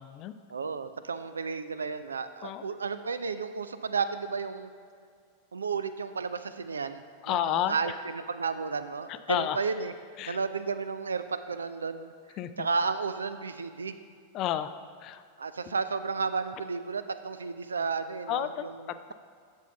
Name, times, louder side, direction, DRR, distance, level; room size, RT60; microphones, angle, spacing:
voice 1, 0.0-0.3 2.4-2.6 7.2-7.9 9.1-9.6 10.2-10.4 12.4-12.7 14.3-14.7 15.0-15.2 15.7-15.8 18.3-19.1, left 11 dB, 35° left, 11 dB, 0.3 m, -31 dB
voice 2, 0.5-4.7 5.5-9.9 10.3-12.1 12.6-13.9 15.4-18.8, right 5 dB, 75° right, 11 dB, 0.3 m, -32 dB
10.5 x 7.1 x 2.3 m, 2.2 s
figure-of-eight pair, 90°, 0 cm